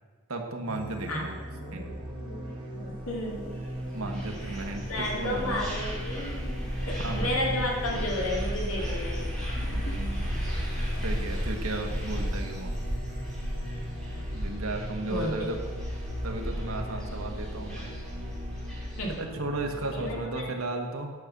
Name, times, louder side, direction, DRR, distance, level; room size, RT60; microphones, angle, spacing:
voice 1, 0.3-1.4 1.7-2.0 3.9-5.7 7.0-7.8 9.7-10.4 11.0-12.8 14.3-15.6 16.2-17.9 19.1-21.1, right 2 dB, 80° right, 3 dB, 1.4 m, -35 dB
sound 1, 0.7-20.2, equal, 25° right, 2.6 m, -39 dB
voice 2, 1.5-3.7 4.9-6.6 6.9-9.9 15.0-15.5 19.0-19.2 19.9-20.5, left 1 dB, 85° left, -2 dB, 2.6 m, -33 dB
sound 2, 1.8-15.6, right 1 dB, 65° left, 2.7 m, -49 dB
sound 3, 3.5-19.2, equal, 5° left, 3.1 m, -34 dB
10.0 x 6.1 x 6.7 m, 1.4 s
head